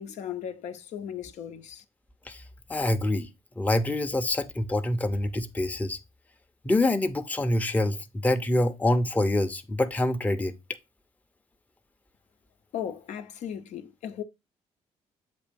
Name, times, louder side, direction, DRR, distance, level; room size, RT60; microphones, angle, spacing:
voice 1, 0.0-1.8 12.7-14.2, left 9 dB, 70° left, 0.7 m, -36 dB
voice 2, 2.7-3.3 3.6-6.0 6.6-10.5, left 1 dB, 10° left, 0.6 m, -26 dB
7.6 x 2.7 x 5.1 m
cardioid pair, 95°, 12 cm